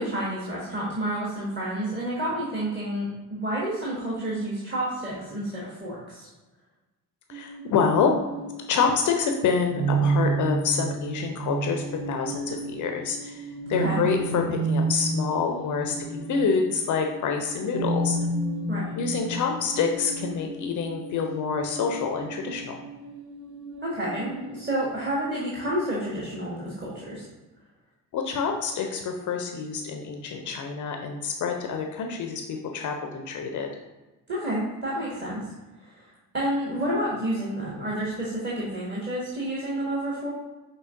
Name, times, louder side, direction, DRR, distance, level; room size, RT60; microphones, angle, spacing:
voice 1, 0.0-6.3 13.7-14.0 18.7-18.8 23.8-27.2 34.3-35.4 35.8-36.1 36.3-40.3, right 1 dB, 20° right, -5 dB, 1.5 m, -30 dB
voice 2, 7.3-8.1 8.7-15.9 16.3-18.2 19.0-22.8 28.1-32.4 32.7-33.7, left 5 dB, 40° left, 3 dB, 0.6 m, -27 dB
sound 1, 7.3-25.1, right 3 dB, 40° right, 1.0 m, -31 dB
6.1 x 3.3 x 2.6 m, 1.1 s
figure-of-eight pair, 45°, 49 cm